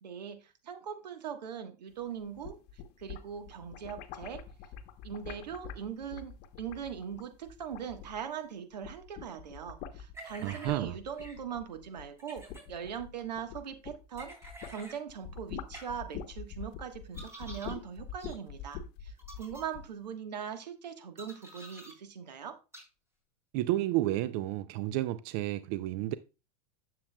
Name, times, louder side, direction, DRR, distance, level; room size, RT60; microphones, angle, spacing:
voice 1, 0.0-2.6 3.0-4.4 5.0-14.3 14.7-22.6, right 8 dB, 90° right, 1.3 m, -41 dB
sound 1, 2.2-8.4 8.7-14.8 15.1-19.9, left 7 dB, 50° left, 1.0 m, -45 dB
sound 2, 10.1-10.8 11.2-11.4 12.2-12.6 14.2-15.0 15.7-15.8 17.1-17.8 18.2-18.4 19.2-19.6 21.2-21.9 22.7-22.8, right 1 dB, 15° right, 3.6 m, -48 dB
voice 2, 10.4-11.0 23.5-26.1, right 15 dB, 55° right, 0.5 m, -31 dB
9.8 x 7.4 x 2.2 m
hypercardioid pair, 110°, 21 cm